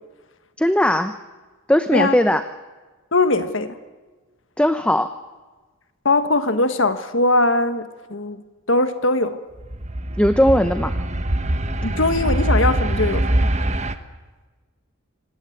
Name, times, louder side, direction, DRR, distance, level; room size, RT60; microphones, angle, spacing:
voice 1, 0.6-1.1 1.7-2.4 4.6-5.1 10.2-10.9, equal, 5° left, 10 dB, 0.7 m, -18 dB
voice 2, 3.1-3.8 6.0-8.4 8.7-9.4 11.8-13.5, left 2 dB, 60° left, 10 dB, 1.5 m, -20 dB
sound 1, 9.6-13.9, right 1 dB, 30° right, 1.2 m, -22 dB
26.0 x 18.5 x 8.7 m, 1.3 s
head